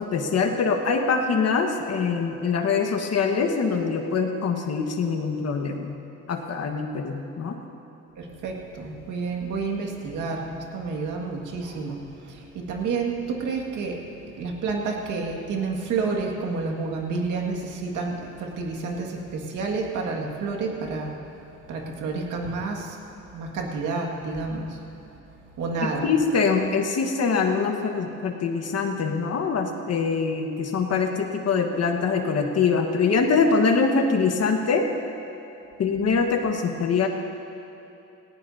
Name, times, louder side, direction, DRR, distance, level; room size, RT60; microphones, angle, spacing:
voice 1, 0.0-6.0 6.3-7.6 25.8-34.9 35.8-37.1, left 5 dB, 55° left, 3 dB, 1.5 m, -24 dB
voice 2, 8.2-21.2 21.7-23.0 23.3-24.8 25.6-26.1, right 4 dB, 80° right, 0 dB, 2.1 m, -30 dB
18.5 x 18.5 x 2.8 m, 2.8 s
cardioid pair, 90°, 30 cm